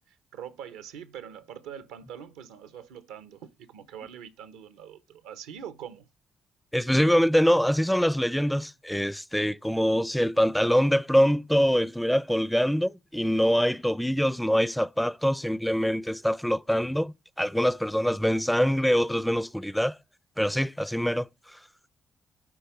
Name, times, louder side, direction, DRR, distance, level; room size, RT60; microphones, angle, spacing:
voice 1, 0.1-6.1, right 8 dB, 85° right, 0.7 m, -43 dB
voice 2, 6.7-20.0 20.4-21.6, equal, 5° left, 0.4 m, -24 dB
9.4 x 3.5 x 7.0 m
supercardioid pair, 55°, 0 cm